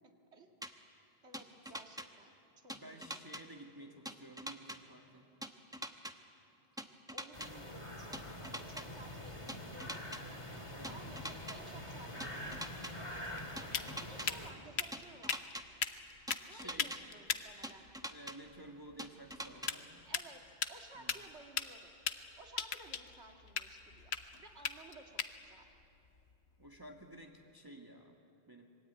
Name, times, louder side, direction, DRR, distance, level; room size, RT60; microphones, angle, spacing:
sound 1, 0.6-0.7 1.3-2.1 2.7-3.4 4.1-4.8 5.4-6.1 6.8-7.5 8.1-8.9 9.5-10.2 10.8-11.6 12.2-12.9 13.6-14.3 14.9-15.6 16.3-17.0 17.6-18.4 19.0-19.7, equal, 5° right, 1.0 m, -43 dB
voice 1, 1.2-2.3 2.6-3.1 7.1-10.0 10.9-12.6 13.0-13.5 14.0-15.6 16.5-17.9 20.0-20.4 20.7-21.9 22.4-25.7, right 2 dB, 70° right, 3 dB, 2.3 m, -56 dB
voice 2, 2.7-5.2 10.7-11.1 16.5-16.9 18.0-20.1 20.9-21.1 26.6-28.2 28.5-28.7, right 1 dB, 20° right, 1 dB, 1.6 m, -53 dB
sound 2, 7.3-14.5, left 1 dB, 25° left, 2.7 m, -45 dB
sound 3, 13.1-27.2, left 6 dB, 65° left, 1.2 m, -42 dB
25.5 x 22.0 x 9.3 m, 3.0 s
omnidirectional pair, 1.2 m